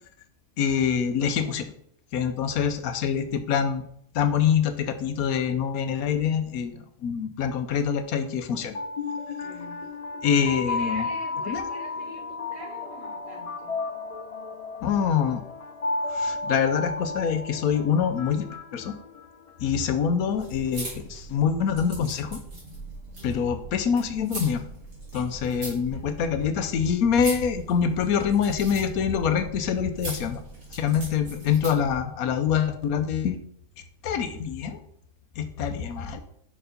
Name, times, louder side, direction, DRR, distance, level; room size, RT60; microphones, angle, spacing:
voice 1, 0.6-1.6 2.1-3.8 4.1-8.7 10.2-11.1 11.5-11.6 14.8-15.4 16.1-18.5 18.7-18.9 19.6-22.4 23.2-24.6 25.1-30.4 30.7-33.4 34.0-34.8 35.4-36.2, left 7 dB, 80° left, 9 dB, 1.2 m, -25 dB
voice 2, 3.1-3.5 9.4-9.8 10.4-13.7 23.2-23.6 25.1-25.2 25.9-26.0 31.2-31.6, right 1 dB, 35° right, -4 dB, 2.4 m, -44 dB
sound 1, 8.5-19.6, left 3 dB, 65° left, 0.3 m, -33 dB
sound 2, 20.3-32.0, right 2 dB, 65° right, 2.8 m, -41 dB
5.5 x 4.7 x 5.0 m, 0.66 s
omnidirectional pair, 1.5 m